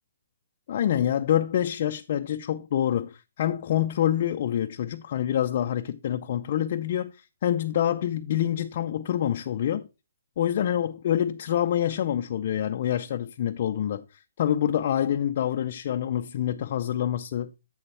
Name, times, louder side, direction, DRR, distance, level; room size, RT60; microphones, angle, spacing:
voice 1, 0.7-9.9 10.4-14.0 14.4-17.5, left 10 dB, 40° left, 0.4 m, -26 dB
7.9 x 6.8 x 3.2 m
hypercardioid pair, 165°, 0 cm